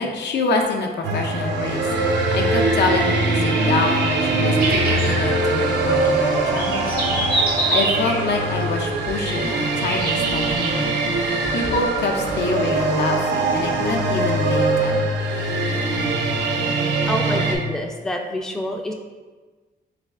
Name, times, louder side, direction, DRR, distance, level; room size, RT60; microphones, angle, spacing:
voice 1, 0.0-1.8 2.3-7.0 7.7-11.0 11.5-15.1, left 3 dB, 70° left, 2 dB, 0.6 m, -25 dB
sound 1, 1.0-17.6, right 2 dB, 90° right, 0.5 m, -22 dB
sound 2, 4.6-12.5, right 2 dB, 60° right, 0.9 m, -28 dB
voice 2, 17.1-18.9, left 1 dB, 5° left, 2 dB, 0.4 m, -27 dB
3.3 x 3.1 x 3.6 m, 1.3 s
cardioid pair, 85°, 18 cm